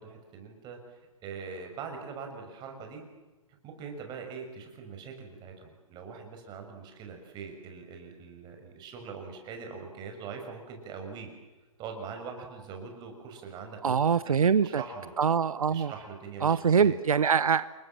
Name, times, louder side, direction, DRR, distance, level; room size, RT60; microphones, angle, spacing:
voice 1, 0.0-3.0 3.6-11.3 11.8-15.1 15.7-17.0, right 5 dB, 25° right, 4 dB, 5.9 m, -42 dB
voice 2, 13.8-14.8 15.2-15.9 16.4-17.6, right 6 dB, 80° right, 16 dB, 0.8 m, -24 dB
28.5 x 21.5 x 7.6 m, 1.2 s
hypercardioid pair, 135°, 18 cm